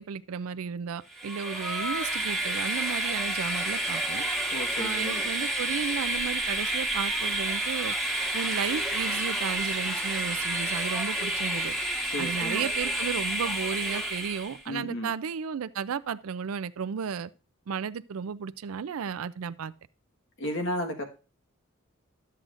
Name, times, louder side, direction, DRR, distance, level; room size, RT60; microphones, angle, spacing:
voice 1, 0.0-4.2 4.8-7.9 8.3-11.7 12.2-17.3 17.7-19.7, right 7 dB, 70° right, 0.4 m, -34 dB
Train, 1.1-14.6, right 1 dB, ahead, 1.3 m, -30 dB
voice 2, 4.5-5.2 12.1-12.7 14.7-15.1 20.4-21.0, left 1 dB, 60° left, 1.5 m, -33 dB
12.5 x 7.6 x 2.5 m
head